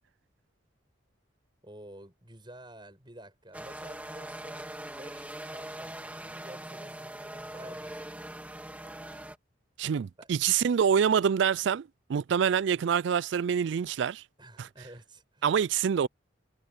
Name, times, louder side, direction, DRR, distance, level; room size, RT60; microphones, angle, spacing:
voice 1, 1.6-4.7 4.9-8.4 10.2-10.3 14.4-15.5, right 1 dB, 25° right, 6.5 m, -50 dB
sound 1, 3.5-9.4, right 1 dB, 10° right, 2.0 m, -42 dB
voice 2, 9.8-14.2 14.6-14.7 15.4-16.1, right 7 dB, 65° right, 0.3 m, -26 dB
head